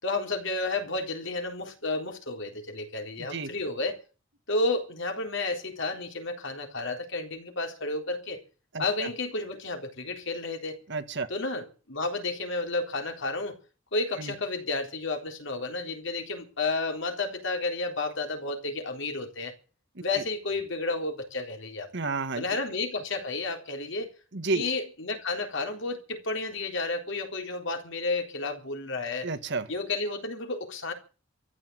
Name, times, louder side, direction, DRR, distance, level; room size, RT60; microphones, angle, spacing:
voice 1, 0.0-4.0 4.5-8.4 8.8-10.8 11.3-13.6 13.9-19.5 20.0-21.9 22.4-24.1 24.5-29.3 29.7-30.9, left 3 dB, 65° left, 3.8 m, -31 dB
voice 2, 3.2-3.5 8.7-9.1 10.9-11.3 14.2-14.3 20.2-20.3 21.9-22.4 24.3-24.6 29.2-29.7, right 3 dB, 60° right, 1.7 m, -31 dB
14.5 x 9.8 x 9.6 m
head